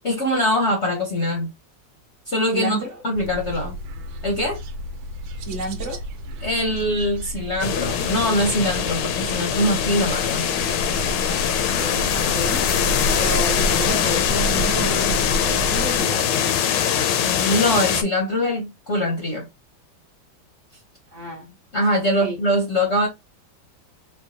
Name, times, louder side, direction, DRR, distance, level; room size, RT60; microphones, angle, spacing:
voice 1, 0.0-1.5 2.3-2.8 3.0-3.8 4.2-4.6 6.4-10.5 17.2-19.5 21.7-23.1, equal, 50° left, 0.8 m, -22 dB
voice 2, 2.5-3.0 5.5-6.0 11.7-12.7 13.1-16.5 21.1-21.5 22.0-22.4, right 2 dB, 50° right, 1.1 m, -31 dB
sound 1, 3.1-16.0, right 1 dB, 85° right, 1.4 m, -31 dB
sound 2, 7.6-18.0, left 9 dB, 75° left, 1.2 m, -22 dB
4.4 x 2.3 x 2.7 m
omnidirectional pair, 2.1 m